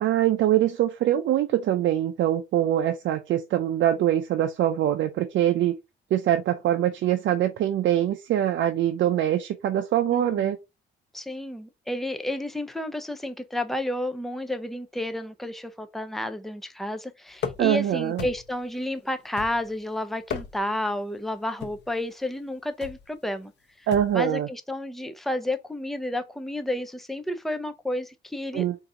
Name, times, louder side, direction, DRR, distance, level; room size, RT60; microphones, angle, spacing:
voice 1, 0.0-5.7 6.1-10.6 17.6-18.3 23.9-24.5 28.5-28.7, right 11 dB, 70° right, 0.6 m, -23 dB
voice 2, 10.1-10.5 11.1-23.5 23.8-23.9 24.1-28.6, left 1 dB, ahead, 0.6 m, -31 dB
sound 1, 17.4-17.8 18.2-18.6 19.4-19.8 20.2-20.8 21.6-21.9 22.8-23.1 23.9-24.2, left 7 dB, 60° left, 0.8 m, -36 dB
3.9 x 2.7 x 4.8 m
cardioid pair, 90°, 20 cm